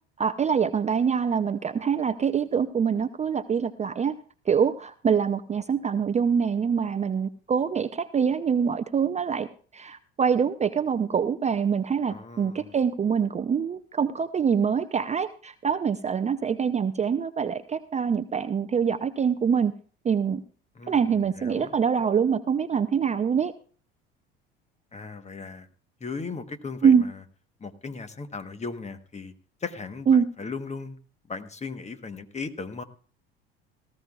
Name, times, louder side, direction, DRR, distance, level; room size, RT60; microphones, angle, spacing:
voice 1, 0.2-4.2 4.5-9.5 9.7-19.7 20.0-20.4 20.9-23.5 26.8-27.0 30.1-30.3, right 7 dB, 25° right, 11 dB, 0.5 m, -24 dB
voice 2, 12.1-12.8 20.7-21.7 24.9-25.7 26.0-27.2 27.6-29.3 29.6-31.0 31.3-32.8, left 4 dB, 25° left, 11 dB, 1.1 m, -37 dB
18.0 x 14.5 x 2.4 m, 0.42 s
hypercardioid pair, 70°, 29 cm